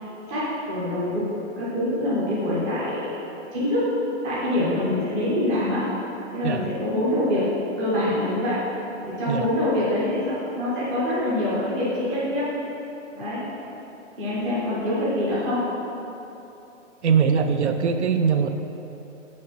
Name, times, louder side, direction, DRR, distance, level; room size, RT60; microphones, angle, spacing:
voice 1, 0.3-1.3 1.6-3.0 3.5-3.9 4.2-5.8 6.3-7.5 7.8-8.6 9.0-12.5 13.1-13.4 14.2-15.6, left 1 dB, 5° right, -10 dB, 0.5 m, -25 dB
voice 2, 17.0-18.5, right 6 dB, 65° right, 7 dB, 0.5 m, -21 dB
6.4 x 4.4 x 5.6 m, 3.0 s
hypercardioid pair, 165°, 38 cm